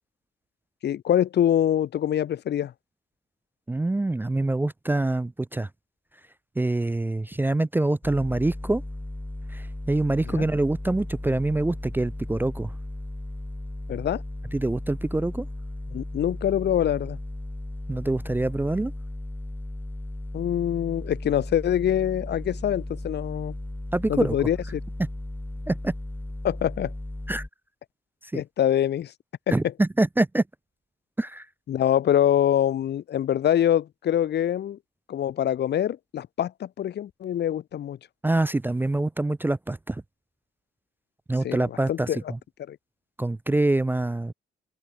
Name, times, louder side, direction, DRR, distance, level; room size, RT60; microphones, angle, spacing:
voice 1, 0.8-2.7 10.3-10.5 13.9-14.2 15.9-17.2 20.3-23.5 24.1-24.8 26.4-26.9 28.3-29.1 29.5-29.6 31.7-34.8 35.1-38.0 41.4-42.2 42.7-42.8, left 10 dB, 60° left, 0.9 m, -24 dB
voice 2, 3.7-5.7 6.6-8.8 9.5-12.7 14.5-15.5 17.9-18.9 23.9-24.4 25.7-25.9 27.3-27.4 28.3-28.4 29.5-30.4 31.2-31.5 38.2-40.0 41.3-42.4 43.2-44.3, right 2 dB, 10° right, 0.5 m, -25 dB
sound 1, 8.0-27.5, left 1 dB, 10° left, 3.4 m, -36 dB
open air
cardioid pair, 90°, 20 cm